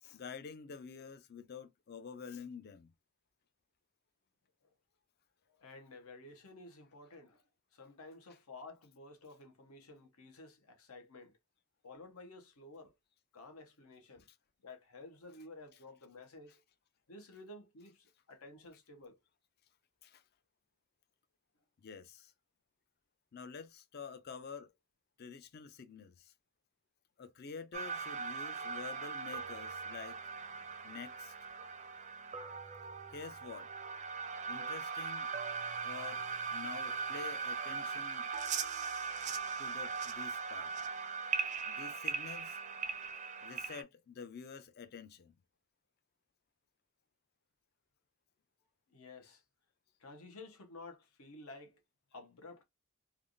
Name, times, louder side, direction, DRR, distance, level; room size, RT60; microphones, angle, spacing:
voice 1, 0.0-2.9 20.0-20.2 21.8-22.3 23.3-24.7 25.2-26.3 27.2-30.2 30.8-31.4 33.1-33.7 34.5-35.3 35.8-36.2 36.5-38.3 39.6-40.7 41.7-42.6 43.4-45.3, left 6 dB, 45° left, 0.4 m, -48 dB
voice 2, 5.5-7.4 7.7-11.3 11.8-12.9 13.3-14.2 14.6-16.6 17.1-19.2 48.9-49.4 50.0-51.8 52.1-52.6, left 2 dB, 75° left, 1.0 m, -53 dB
sound 1, 27.7-43.8, right 5 dB, 30° right, 0.4 m, -40 dB
3.3 x 2.4 x 2.5 m
head